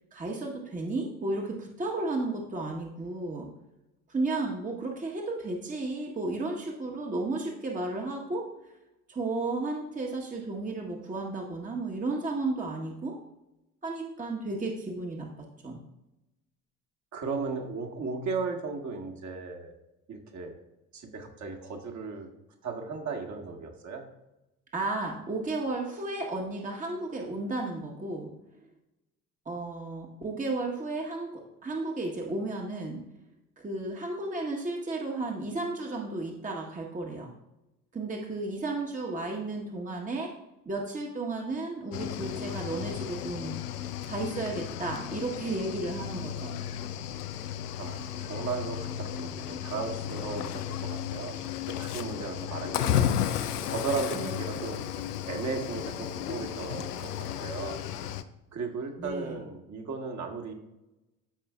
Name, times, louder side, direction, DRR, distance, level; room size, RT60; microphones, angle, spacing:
voice 1, 0.1-3.5 4.1-8.4 9.1-13.2 13.8-15.8 24.7-28.3 29.4-33.0 33.6-37.3 37.9-40.3 40.6-43.6 44.0-46.5 54.1-54.3 59.0-59.4, right 2 dB, 15° right, 0 dB, 1.3 m, -33 dB
voice 2, 17.1-19.7 20.1-20.5 20.9-22.3 22.6-24.0 47.8-51.4 51.7-53.0 53.6-54.9 55.3-57.8 58.5-60.5, right 4 dB, 35° right, 2 dB, 1.6 m, -36 dB
Cricket / Waves surf, 41.9-58.2, left 10 dB, 80° left, 0.6 m, -34 dB
14.0 x 5.3 x 2.4 m, 0.92 s
figure-of-eight pair, 60°, 46 cm